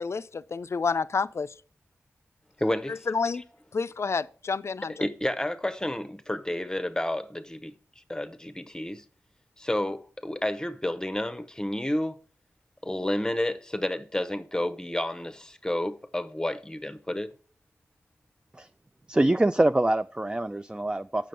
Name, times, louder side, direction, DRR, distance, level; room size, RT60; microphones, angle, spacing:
voice 1, 0.0-1.5 2.9-3.4 3.7-4.9, left 5 dB, 55° left, 0.4 m, -29 dB
voice 2, 2.6-3.0 5.0-7.7 8.1-9.0 9.6-12.2 12.8-17.3, left 1 dB, 15° left, 0.7 m, -30 dB
voice 3, 19.1-21.3, right 1 dB, 15° right, 0.3 m, -24 dB
7.6 x 6.0 x 5.2 m
cardioid pair, 45°, 5 cm